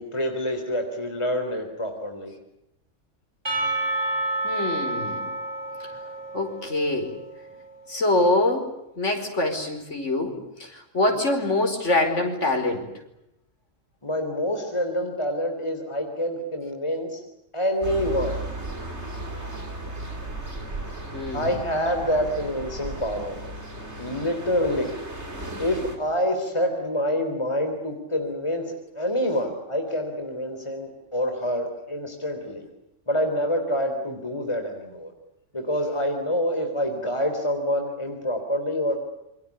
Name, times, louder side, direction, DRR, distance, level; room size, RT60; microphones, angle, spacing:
voice 1, 0.0-2.3 14.0-17.2 17.5-18.4 21.3-23.4 24.0-24.9 25.6-32.7 33.1-35.1 35.5-38.9, equal, 20° left, 4 dB, 3.7 m, -27 dB
Percussion / Church bell, 3.4-7.8, right 2 dB, 20° right, 6.4 m, -30 dB
voice 2, 4.4-5.3 6.3-7.1 7.9-8.7 9.0-12.9 21.1-21.6, left 2 dB, 65° left, 4 dB, 5.4 m, -24 dB
sound 1, 17.8-26.0, right 1 dB, 60° right, 4.6 m, -35 dB
28.0 x 24.5 x 8.4 m, 0.84 s
omnidirectional pair, 1.3 m